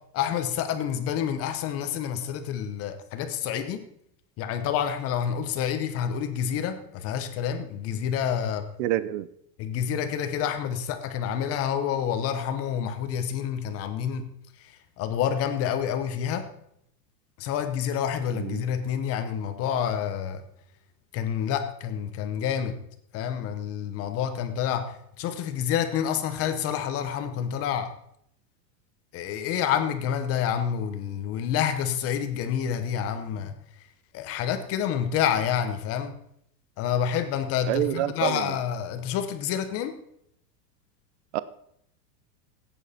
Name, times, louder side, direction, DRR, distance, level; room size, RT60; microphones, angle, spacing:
voice 1, 0.1-3.8 4.4-8.7 9.6-14.3 15.0-16.4 17.4-20.4 21.1-22.8 23.1-27.9 29.1-33.5 34.1-36.1 36.8-39.9, left 8 dB, 30° left, 9 dB, 1.0 m, -28 dB
voice 2, 8.8-9.3 18.3-18.6 37.7-38.5 41.3-41.4, right 14 dB, 45° right, 16 dB, 0.5 m, -27 dB
15.5 x 9.1 x 4.3 m, 0.72 s
supercardioid pair, 165°, 48 cm